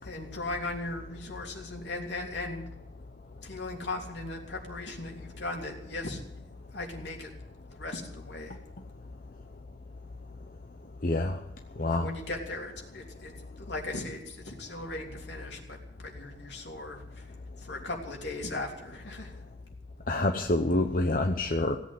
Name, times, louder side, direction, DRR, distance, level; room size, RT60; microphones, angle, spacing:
voice 1, 0.0-2.6 3.4-6.2 6.7-7.3 7.7-8.6 11.9-19.3, left 2 dB, 75° left, 1 dB, 3.1 m, -38 dB
voice 2, 11.0-11.4 11.8-12.1 20.1-21.8, left 2 dB, 50° left, 4 dB, 0.9 m, -27 dB
17.0 x 8.3 x 9.7 m, 0.88 s
head